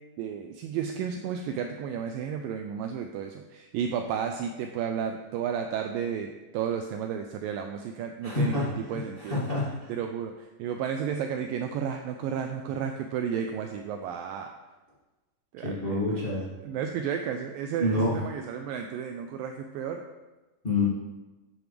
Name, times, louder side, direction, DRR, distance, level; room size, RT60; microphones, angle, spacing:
voice 1, 0.2-9.4 9.9-14.5 15.5-16.0 16.6-20.0, right 7 dB, 90° right, 5 dB, 2.0 m, -32 dB
voice 2, 8.2-9.9 15.6-16.5 17.8-18.2 20.6-20.8, left 2 dB, 20° left, -8 dB, 1.5 m, -28 dB
11.0 x 7.8 x 3.4 m, 1.1 s
omnidirectional pair, 4.6 m